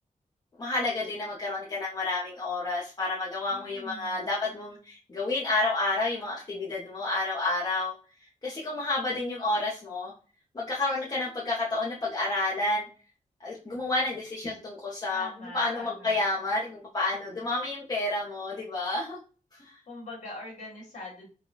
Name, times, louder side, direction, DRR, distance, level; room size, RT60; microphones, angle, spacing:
voice 1, 0.6-7.9 8.4-10.1 10.5-12.9 13.4-19.2 19.6-19.7, left 2 dB, 30° left, -6 dB, 0.7 m, -30 dB
voice 2, 3.5-4.3 15.1-16.2 19.9-21.3, left 1 dB, 70° left, -5 dB, 1.5 m, -43 dB
3.9 x 2.1 x 2.4 m, 0.35 s
wide cardioid pair, 145°, 14 cm